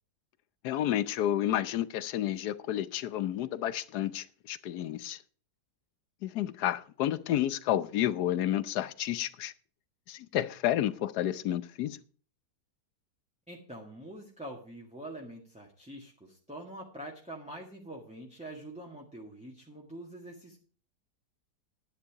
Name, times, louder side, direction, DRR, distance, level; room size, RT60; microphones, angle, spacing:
voice 1, 0.6-5.2 6.2-9.5 10.1-12.0, left 12 dB, 75° left, 1.2 m, -30 dB
voice 2, 13.5-20.6, right 1 dB, 5° right, 1.5 m, -45 dB
11.0 x 9.8 x 4.7 m
omnidirectional pair, 1.8 m